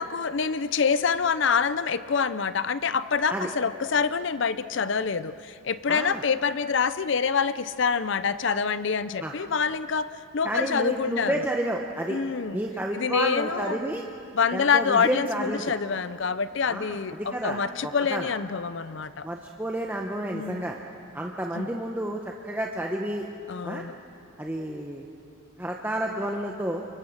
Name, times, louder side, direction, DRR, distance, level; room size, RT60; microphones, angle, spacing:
voice 1, 0.0-10.1 10.3-11.5 12.1-12.6 12.9-13.8 14.3-19.3 20.3-20.7 21.6-21.7 23.5-24.0, left 6 dB, 60° left, 14 dB, 0.6 m, -26 dB
voice 2, 5.9-6.2 9.2-9.3 10.4-12.2 12.5-14.1 14.5-15.7 16.7-18.3 19.2-20.8 21.1-23.3 23.6-23.8 24.4-25.0 25.6-26.9, right 1 dB, 10° right, 0 dB, 1.0 m, -30 dB
29.0 x 23.5 x 6.5 m, 2.7 s
head